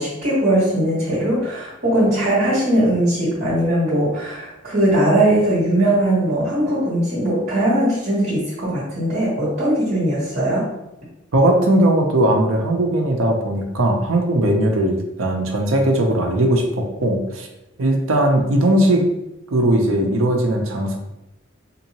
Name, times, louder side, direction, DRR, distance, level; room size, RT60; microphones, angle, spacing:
voice 1, 0.0-10.7, right 1 dB, 45° right, -10 dB, 1.3 m, -19 dB
voice 2, 11.3-17.5 17.8-19.1 19.5-21.0, right 1 dB, 80° right, 2 dB, 0.6 m, -18 dB
3.7 x 2.6 x 2.9 m, 0.95 s
head